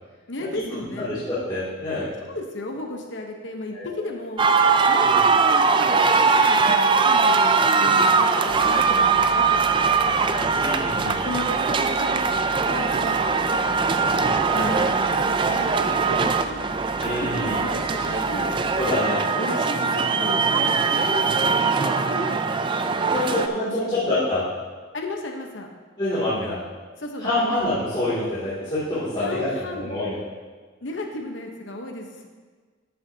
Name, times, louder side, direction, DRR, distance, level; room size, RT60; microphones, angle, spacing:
voice 1, 0.3-1.1 2.2-5.4 5.8-10.5 11.0-12.3 12.6-14.2 14.5-16.7 17.3-18.6 19.3-20.7 21.0-22.4 23.0-24.0 24.9-25.7 26.4-26.6 27.0-27.6 29.2-29.9 30.8-32.3, left 2 dB, 65° left, 2 dB, 1.0 m, -35 dB
voice 2, 1.0-2.1 3.7-4.1 5.0-5.2 10.6-11.2 14.5-14.7 17.0-17.6 18.7-19.3 23.1-24.5 26.0-26.6 27.2-30.2, left 1 dB, 25° left, -13 dB, 2.4 m, -26 dB
sound 1, 4.4-23.5, right 4 dB, 25° right, 0.3 m, -21 dB
sound 2, 8.4-18.9, right 1 dB, 65° right, 1.7 m, -40 dB
13.0 x 7.9 x 2.8 m, 1.5 s
head